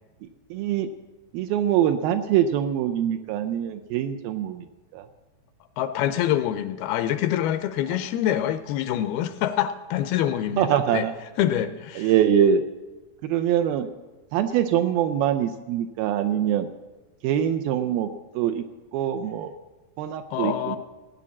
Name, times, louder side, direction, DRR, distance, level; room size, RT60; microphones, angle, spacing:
voice 1, 0.5-0.9 1.3-4.7 4.9-5.1 10.6-11.1 12.0-12.6 13.2-13.9 14.3-16.7 17.2-18.1 18.4-18.6 18.9-19.5 20.0-20.8, right 10 dB, 80° right, 7 dB, 2.2 m, -23 dB
voice 2, 5.8-11.1 11.4-12.1 20.3-20.8, left 11 dB, 80° left, 11 dB, 2.3 m, -25 dB
15.5 x 9.5 x 7.3 m, 1.2 s
omnidirectional pair, 4.6 m